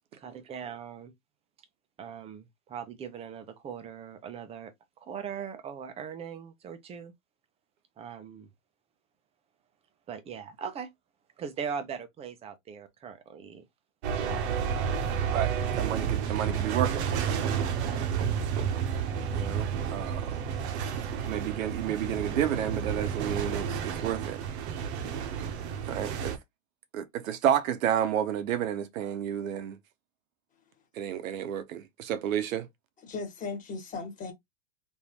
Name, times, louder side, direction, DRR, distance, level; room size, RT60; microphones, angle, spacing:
voice 1, 0.2-1.1 2.0-4.7 5.0-7.1 8.0-8.5 10.1-10.9 11.4-13.6 14.1-14.9 17.8-18.0, right 7 dB, 15° right, 0.5 m, -40 dB
sound 1, 14.0-26.4, right 7 dB, 55° right, 0.8 m, -31 dB
voice 2, 15.3-17.1 19.3-20.4 21.2-24.4 25.9-26.3 26.9-29.8 31.0-32.7, right 10 dB, 85° right, 0.9 m, -31 dB
voice 3, 33.0-34.3, left 4 dB, 20° left, 1.5 m, -37 dB
3.5 x 2.6 x 2.9 m
supercardioid pair, 145°, 39 cm